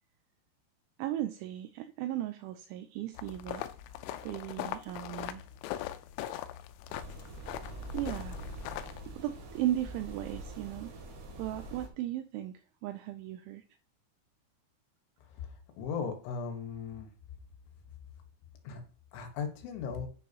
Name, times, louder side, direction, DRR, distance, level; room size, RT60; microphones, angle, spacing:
voice 1, 1.0-3.7 4.2-5.4 7.9-8.4 9.1-10.9 11.4-12.5 12.8-13.6, right 13 dB, 85° right, 9 dB, 2.7 m, -36 dB
sound 1, 3.2-9.1, left 12 dB, 90° left, 3.5 m, -41 dB
sound 2, 6.9-11.9, right 1 dB, 55° right, 4.3 m, -44 dB
voice 2, 15.3-17.1 18.7-18.8 19.1-20.1, left 6 dB, 70° left, 5 dB, 3.6 m, -37 dB
10.5 x 10.0 x 2.9 m, 0.40 s
omnidirectional pair, 6.0 m